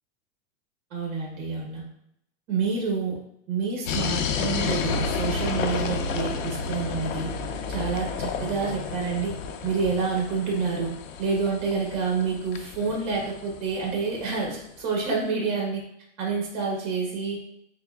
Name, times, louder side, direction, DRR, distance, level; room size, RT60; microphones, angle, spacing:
voice 1, 0.9-1.8 2.5-3.2 3.5-7.3 7.7-9.3 9.6-10.9 11.2-15.8 16.2-17.4, right 5 dB, 35° right, -1 dB, 1.2 m, -28 dB
sound 1, 3.9-14.6, left 5 dB, 90° left, 0.6 m, -31 dB
3.9 x 3.4 x 2.4 m, 0.76 s
supercardioid pair, 175°, 38 cm